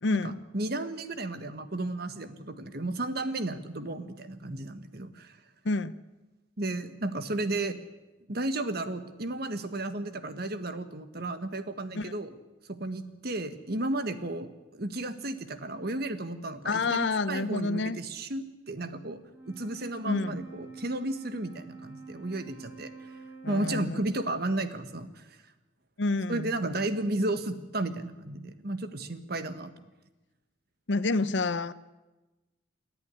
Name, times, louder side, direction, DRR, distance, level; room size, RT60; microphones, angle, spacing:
voice 1, 0.0-0.4 5.6-5.9 11.9-12.2 16.6-18.0 20.0-20.4 23.4-24.0 26.0-26.5 30.9-31.7, left 3 dB, 70° left, 15 dB, 0.8 m, -28 dB
voice 2, 0.5-5.4 6.6-7.8 8.3-12.3 12.7-19.2 19.5-23.1 23.5-25.4 26.3-29.7, right 2 dB, 55° right, 10 dB, 1.5 m, -33 dB
Wind instrument woodwind instrument, 19.2-24.0, right 4 dB, 10° right, 3.0 m, -47 dB
28.5 x 11.0 x 9.9 m, 1.1 s
head